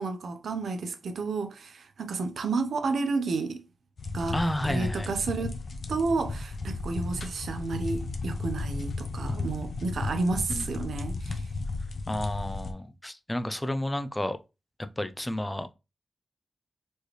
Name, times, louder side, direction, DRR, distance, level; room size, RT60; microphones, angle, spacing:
voice 1, 0.0-3.6 4.1-4.4 4.6-5.6 5.9-11.4, right 4 dB, 85° right, 0.6 m, -31 dB
sound 1, 4.0-12.7, left 3 dB, 50° left, 0.7 m, -34 dB
voice 2, 4.3-5.1 10.5-10.8 12.1-14.4 15.0-15.7, left 1 dB, 10° left, 0.3 m, -31 dB
4.4 x 3.2 x 3.1 m
wide cardioid pair, 160°, 0 cm